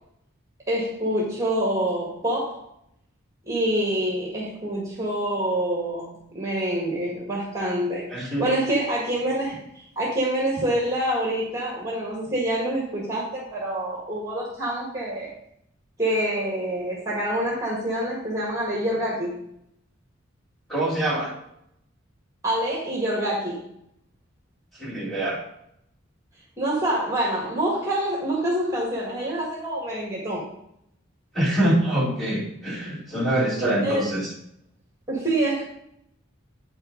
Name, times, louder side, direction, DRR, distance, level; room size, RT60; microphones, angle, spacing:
voice 1, 0.7-2.6 3.5-9.6 10.0-15.3 16.0-19.3 22.4-23.6 26.6-30.4 33.8-34.1 35.1-35.6, right 1 dB, 15° right, -4 dB, 1.9 m, -26 dB
voice 2, 8.1-8.5 20.7-21.3 24.8-25.4 31.3-34.3, right 1 dB, ahead, -7 dB, 2.3 m, -24 dB
8.9 x 6.3 x 3.9 m, 0.75 s
head